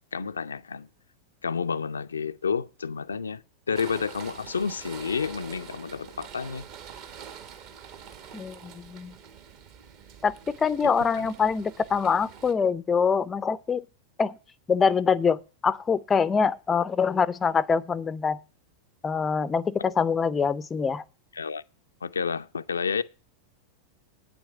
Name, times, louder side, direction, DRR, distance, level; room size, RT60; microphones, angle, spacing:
voice 1, 0.1-0.9 1.4-6.6 11.2-11.3 21.4-21.6 22.0-23.0, left 6 dB, 75° left, 0.5 m, -30 dB
sound 1, 3.7-12.5, right 8 dB, 45° right, 1.6 m, -45 dB
voice 2, 8.3-9.2 10.2-13.9 14.2-14.4 14.7-18.4 19.0-21.0, left 6 dB, 20° left, 0.5 m, -24 dB
9.1 x 7.8 x 5.5 m
figure-of-eight pair, 90°, 0 cm